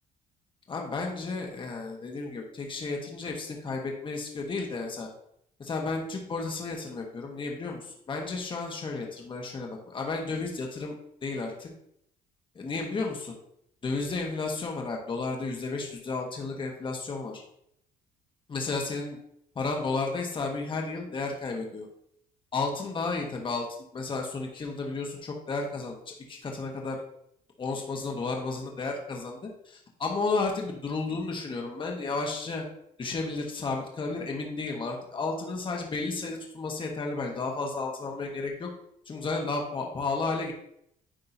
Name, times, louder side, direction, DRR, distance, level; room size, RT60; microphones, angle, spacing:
voice 1, 0.7-5.1 5.6-10.9 11.2-11.7 12.5-13.4 13.8-17.4 18.5-19.2 19.5-21.9 22.5-23.7 23.9-27.0 27.6-29.4 29.6-32.6 33.0-38.7 39.1-40.5, left 3 dB, 30° left, 1 dB, 1.2 m, -32 dB
9.9 x 3.7 x 2.7 m, 0.72 s
cardioid pair, 110°, 17 cm